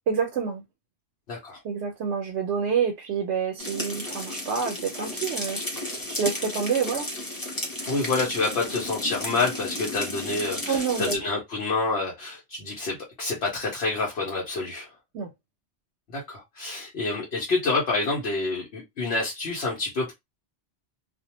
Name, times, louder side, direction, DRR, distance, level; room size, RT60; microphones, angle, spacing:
voice 1, 0.1-0.6 1.6-5.8 6.1-7.1 10.7-11.2 15.1-15.3, right 6 dB, 85° right, 0.9 m, -27 dB
voice 2, 1.3-1.6 7.9-14.9 16.1-20.1, left 3 dB, 70° left, 1.0 m, -28 dB
sound 1, 3.6-11.2, left 1 dB, 20° left, 0.8 m, -33 dB
2.4 x 2.1 x 2.8 m
omnidirectional pair, 1.1 m